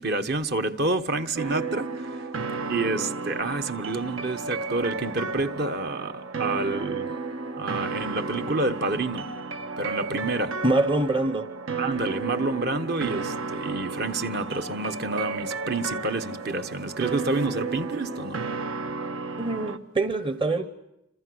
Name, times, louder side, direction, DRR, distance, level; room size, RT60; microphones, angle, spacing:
voice 1, 0.0-2.3 2.7-7.2 7.6-9.3 9.8-10.6 11.8-18.4, right 2 dB, 50° right, 1.3 m, -28 dB
sound 1, 1.4-19.8, right 4 dB, 75° right, 1.5 m, -33 dB
voice 2, 10.6-11.5 19.4-20.7, right 2 dB, 25° right, 1.0 m, -24 dB
28.0 x 26.5 x 7.9 m
head